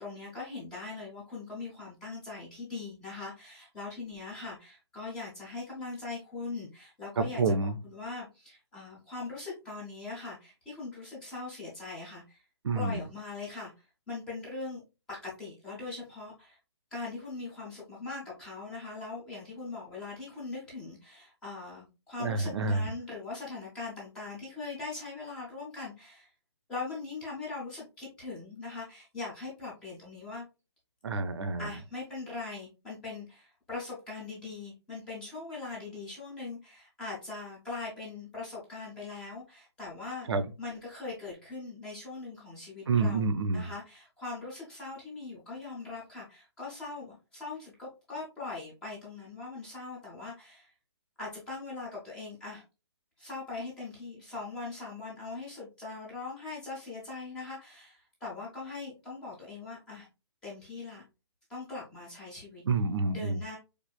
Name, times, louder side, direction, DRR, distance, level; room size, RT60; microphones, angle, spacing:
voice 1, 0.0-12.4 12.7-14.8 15.1-16.6 16.9-26.3 26.7-30.4 31.6-40.3 40.6-43.3 43.5-50.7 51.2-52.6 53.2-60.1 60.4-61.1 61.5-62.6 63.1-63.6, left 3 dB, 5° left, 0.4 m, -41 dB
voice 2, 7.2-7.8 12.6-13.0 22.2-22.9 31.0-31.7 40.3-40.4 42.9-43.7 62.7-63.4, right 3 dB, 70° right, 0.6 m, -28 dB
4.4 x 2.5 x 2.2 m
hypercardioid pair, 175°, 14 cm